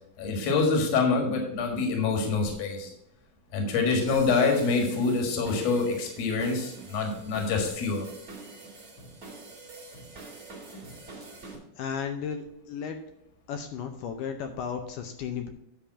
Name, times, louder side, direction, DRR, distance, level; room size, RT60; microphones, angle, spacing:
voice 1, 0.2-2.9 3.5-8.0, left 4 dB, 50° left, 2 dB, 2.3 m, -26 dB
sound 1, 4.1-11.6, right 2 dB, 20° right, 2.0 m, -45 dB
voice 2, 11.8-13.0 13.5-15.5, left 7 dB, 80° left, 6 dB, 1.9 m, -34 dB
10.0 x 3.5 x 7.2 m, 0.79 s
omnidirectional pair, 4.4 m